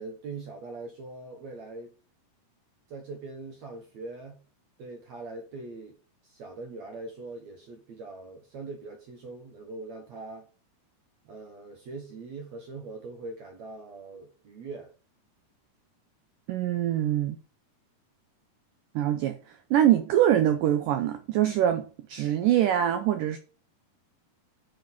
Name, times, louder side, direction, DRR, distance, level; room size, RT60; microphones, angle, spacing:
voice 1, 0.0-1.9 2.9-4.4 4.8-6.0 6.2-10.5 11.3-14.9, right 3 dB, 65° right, 1.8 m, -42 dB
voice 2, 16.5-17.4 19.0-19.4 19.7-23.4, right 11 dB, 90° right, 1.8 m, -24 dB
7.0 x 6.0 x 5.8 m
omnidirectional pair, 4.8 m